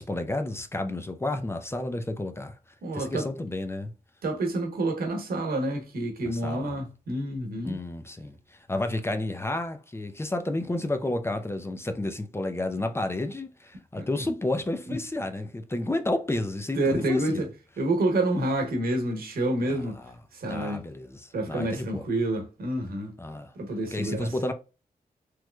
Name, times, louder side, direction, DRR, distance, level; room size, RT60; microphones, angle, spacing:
voice 1, 0.0-2.6 2.9-3.9 6.3-6.7 7.6-17.4 19.7-20.0 20.5-22.1 23.2-23.5 23.9-24.5, left 2 dB, 15° left, 0.5 m, -31 dB
voice 2, 2.8-3.3 4.2-7.8 13.9-14.3 14.9-15.0 16.8-17.5 17.8-20.0 20.3-20.8 21.3-23.1 23.5-24.3, right 1 dB, 90° right, 1.0 m, -28 dB
3.1 x 3.1 x 2.3 m
wide cardioid pair, 95°, 15 cm